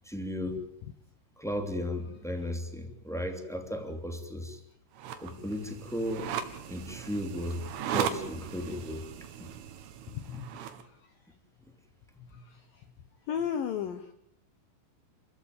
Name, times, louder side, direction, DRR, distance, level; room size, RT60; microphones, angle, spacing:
voice 1, 0.0-0.6 1.4-4.6 5.2-6.4 6.7-7.6 7.9-9.0 10.2-10.4, left 1 dB, ahead, 4 dB, 1.5 m, -35 dB
sound 1, 5.0-10.8, right 9 dB, 85° right, 4.3 m, -37 dB
voice 2, 13.3-14.1, left 8 dB, 75° left, 9 dB, 2.1 m, -32 dB
29.0 x 15.0 x 9.6 m, 0.71 s
omnidirectional pair, 5.6 m